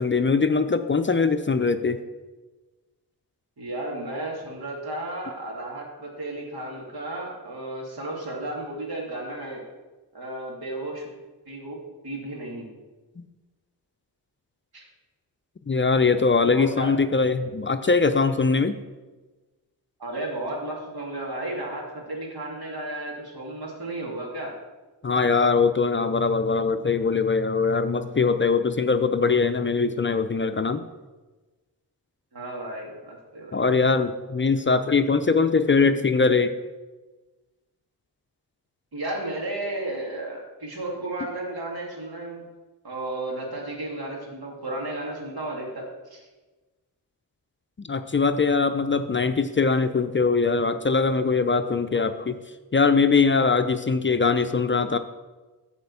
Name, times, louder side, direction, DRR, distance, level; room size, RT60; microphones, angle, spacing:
voice 1, 0.0-2.0 15.7-18.8 25.0-30.8 33.5-36.5 47.8-52.4 52.7-55.0, left 4 dB, 30° left, 9 dB, 0.5 m, -22 dB
voice 2, 3.6-9.6 10.1-11.0 11.5-11.8 12.0-12.7 14.7-14.8 16.4-16.9 20.0-24.5 32.3-33.6 38.9-42.5 42.8-46.2, right 1 dB, 70° right, -1 dB, 2.5 m, -33 dB
9.2 x 4.3 x 7.0 m, 1.2 s
cardioid pair, 55°, 39 cm